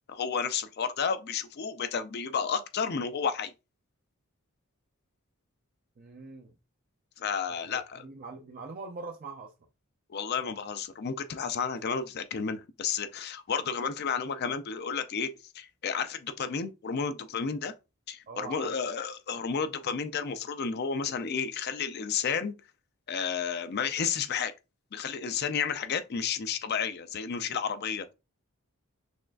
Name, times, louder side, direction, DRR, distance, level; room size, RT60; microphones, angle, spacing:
voice 1, 0.1-3.5 7.2-8.1 10.1-17.7 18.1-22.5 23.1-24.5 24.9-28.1, left 6 dB, 50° left, 0.4 m, -32 dB
voice 2, 6.0-6.6 7.5-9.5 18.3-18.7, right 4 dB, 40° right, 0.4 m, -43 dB
6.2 x 2.4 x 2.3 m
head